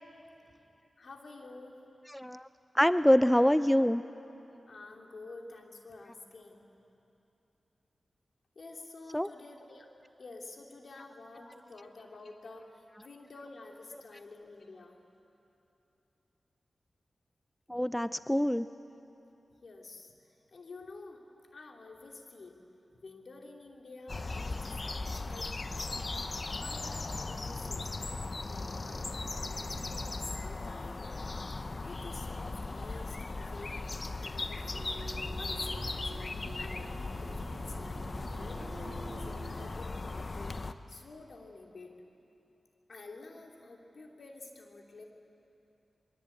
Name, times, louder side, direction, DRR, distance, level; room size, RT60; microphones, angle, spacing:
voice 1, 1.0-1.8 4.7-6.7 8.5-9.9 10.2-15.0 19.6-21.2 21.5-22.6 22.9-25.8 26.6-28.1 28.5-31.1 31.8-33.9 34.2-36.0 36.3-40.5 40.9-41.9 42.9-45.0, left 3 dB, 70° left, 1 dB, 3.0 m, -50 dB
voice 2, 2.1-2.5 2.7-4.0 9.1-9.3 17.7-18.7, equal, 5° left, 13 dB, 0.5 m, -25 dB
sound 1, 24.1-40.7, left 3 dB, 45° left, 1.0 m, -38 dB
sound 2, 34.7-39.7, right 3 dB, 60° right, 2.6 m, -47 dB
23.0 x 22.5 x 8.6 m, 2.9 s
cardioid pair, 45°, 0 cm